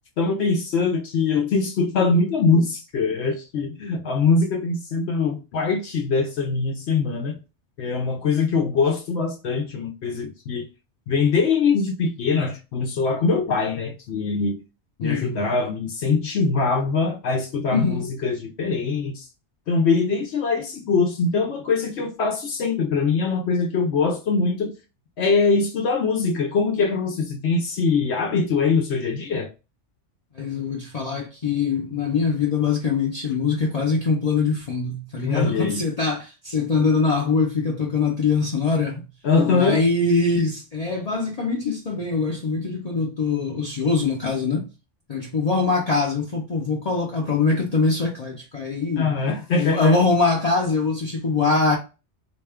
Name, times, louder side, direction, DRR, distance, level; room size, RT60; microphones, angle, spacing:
voice 1, 0.2-7.4 7.8-10.7 11.1-14.6 15.0-19.3 19.7-24.7 25.2-29.5 35.2-35.8 39.2-39.8 49.0-50.0, left 4 dB, 70° left, 0.8 m, -22 dB
voice 2, 15.0-15.4 17.7-18.0 30.3-39.1 39.5-44.6 45.1-49.2 49.6-51.8, left 4 dB, 40° left, 0.6 m, -23 dB
4.2 x 2.2 x 3.4 m
omnidirectional pair, 1.2 m